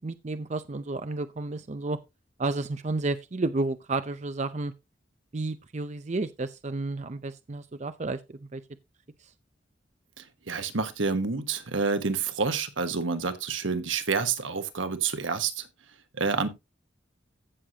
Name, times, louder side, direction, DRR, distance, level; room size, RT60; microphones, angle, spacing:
voice 1, 0.0-2.0 2.4-4.7 5.3-8.6, right 2 dB, 35° right, 0.5 m, -31 dB
voice 2, 10.2-15.7 16.1-16.5, right 4 dB, 85° right, 1.2 m, -28 dB
15.0 x 6.6 x 2.8 m
head